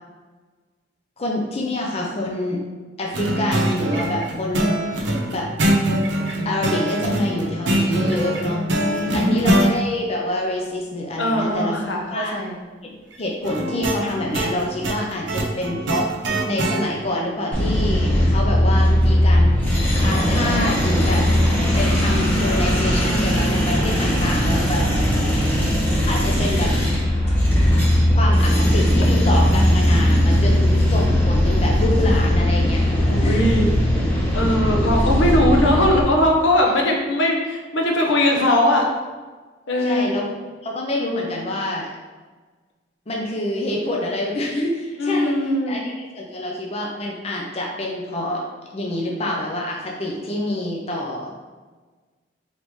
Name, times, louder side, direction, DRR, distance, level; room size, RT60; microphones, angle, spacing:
voice 1, 1.2-2.6 3.0-5.5 6.4-8.6 9.1-11.8 12.1-12.4 12.8-16.1 16.5-21.2 21.8-24.8 26.1-26.7 28.1-32.8 33.2-33.4 39.8-40.3 40.6-41.9 43.1-48.4 48.7-51.3, left 1 dB, 35° left, -1 dB, 0.5 m, -26 dB
sound 1, 3.1-9.7 13.4-16.8, right 1 dB, 75° right, 0.6 m, -23 dB
voice 2, 8.7-9.5 11.2-12.6 24.7-25.6 33.1-33.7 34.3-38.9 39.7-40.1 45.0-45.8, left 1 dB, 75° left, 1 dB, 0.7 m, -21 dB
sound 2, 17.5-36.0, equal, 10° left, 1.2 m, -18 dB
3.9 x 3.5 x 3.1 m, 1.4 s
head